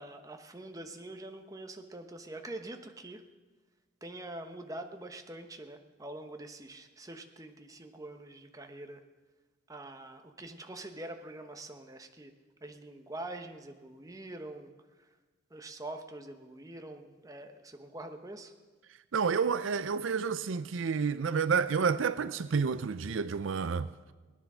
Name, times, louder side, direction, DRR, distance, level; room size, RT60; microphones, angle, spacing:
voice 1, 0.0-3.2 4.0-9.0 9.7-12.3 12.6-14.7 15.5-18.5, right 1 dB, 15° right, 1.0 m, -44 dB
voice 2, 19.1-23.9, right 5 dB, 75° right, 0.5 m, -29 dB
18.5 x 10.0 x 6.2 m
head